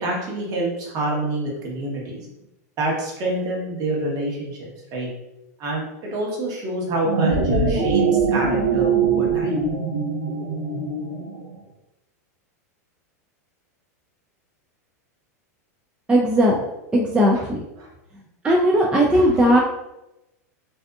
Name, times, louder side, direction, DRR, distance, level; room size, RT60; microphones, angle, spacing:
voice 1, 0.0-2.2 2.8-5.1 5.6-9.6 17.3-17.4 17.8-17.9 19.1-19.3, right 1 dB, 40° right, -2 dB, 1.0 m, -27 dB
sound 1, 6.9-11.5, right 5 dB, 85° right, 0.7 m, -22 dB
voice 2, 16.1-16.6 16.9-17.6 18.4-19.6, equal, 10° right, -2 dB, 0.3 m, -17 dB
2.6 x 2.4 x 2.3 m, 0.92 s
hypercardioid pair, 115°, 9 cm